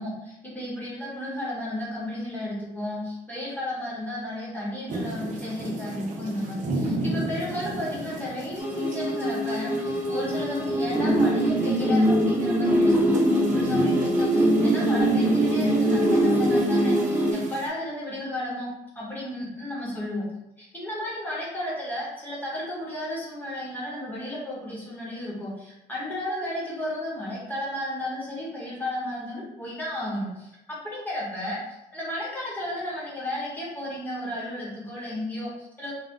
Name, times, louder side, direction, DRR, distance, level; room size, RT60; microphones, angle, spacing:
voice 1, 0.0-18.7 18.9-20.2 20.6-35.9, left 1 dB, 10° left, -6 dB, 1.1 m, -33 dB
sound 1, 4.9-17.7, right 1 dB, 55° right, 0.7 m, -36 dB
sound 2, 8.6-17.3, right 1 dB, 10° right, 0.6 m, -22 dB
2.4 x 2.1 x 3.6 m, 0.89 s
supercardioid pair, 65°, 16 cm